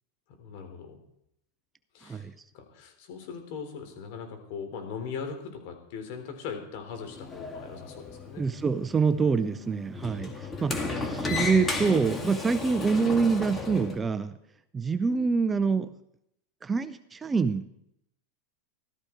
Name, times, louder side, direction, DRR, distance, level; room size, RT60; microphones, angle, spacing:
voice 1, 0.4-1.0 1.9-8.5 10.4-10.5 10.8-11.4, left 6 dB, 60° left, 5 dB, 3.8 m, -40 dB
Sliding door, 6.9-14.0, left 3 dB, 15° left, 2.1 m, -34 dB
voice 2, 8.4-14.4 14.7-15.9 16.6-17.7, right 5 dB, 15° right, 11 dB, 0.6 m, -26 dB
15.5 x 13.0 x 4.6 m, 0.77 s
supercardioid pair, 125°, 0 cm